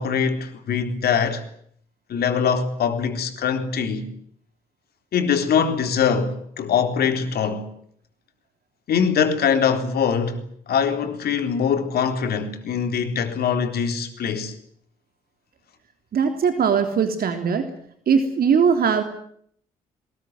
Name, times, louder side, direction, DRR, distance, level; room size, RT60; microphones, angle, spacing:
voice 1, 0.0-1.4 2.1-4.1 5.1-7.7 8.9-10.4 10.7-14.5, left 7 dB, 60° left, 3.9 m, -23 dB
voice 2, 16.1-17.7 18.1-19.0, right 6 dB, 55° right, 3.4 m, -20 dB
22.5 x 20.5 x 9.5 m
hypercardioid pair, 45°, 18 cm